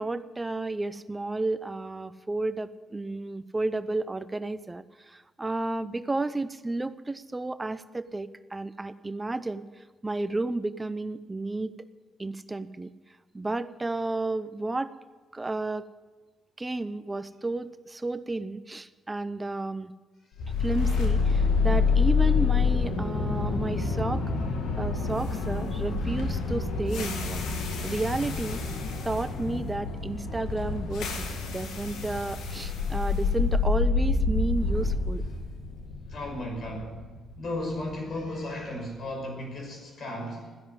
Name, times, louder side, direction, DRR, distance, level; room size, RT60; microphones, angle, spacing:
voice 1, 0.0-11.7 12.2-12.9 13.3-14.9 15.3-15.9 16.6-19.9 20.6-24.2 24.8-27.4 27.8-28.6 29.0-35.2, right 2 dB, 20° right, 14 dB, 0.7 m, -32 dB
sound 1, 20.4-38.5, left 4 dB, 75° left, 2.0 m, -27 dB
voice 2, 36.1-37.0 37.4-40.6, left 1 dB, 55° left, 2 dB, 5.6 m, -35 dB
14.0 x 10.5 x 8.0 m, 1.4 s
hypercardioid pair, 50°, 0 cm